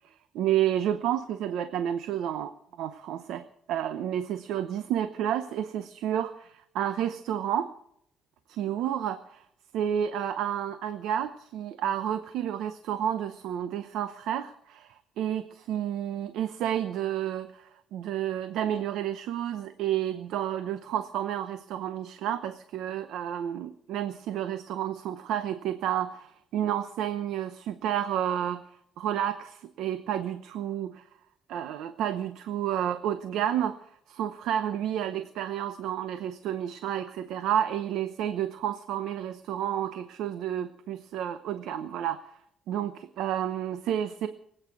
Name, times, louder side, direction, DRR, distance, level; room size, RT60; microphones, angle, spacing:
voice 1, 0.0-2.5 2.8-7.7 8.5-9.4 9.7-28.6 29.0-31.0 31.5-33.8 34.1-42.2 42.7-44.3, right 10 dB, 80° right, 10 dB, 0.8 m, -30 dB
24.0 x 8.9 x 6.2 m, 0.73 s
cardioid pair, 175°, 0 cm